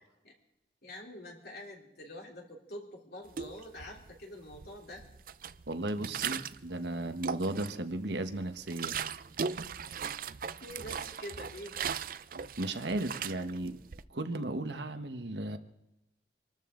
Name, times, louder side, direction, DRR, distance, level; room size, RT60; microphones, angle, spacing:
voice 1, 0.8-5.0 10.6-11.8, left 1 dB, 60° left, 0 dB, 3.5 m, -46 dB
sound 1, 3.3-4.1 4.5-6.7 7.1-7.9 8.3-14.0, right 7 dB, 50° right, 0.5 m, -38 dB
voice 2, 5.7-9.0 12.6-13.8 14.1-15.6, right 2 dB, 75° right, 8 dB, 1.2 m, -35 dB
25.5 x 13.0 x 3.8 m, 0.94 s
head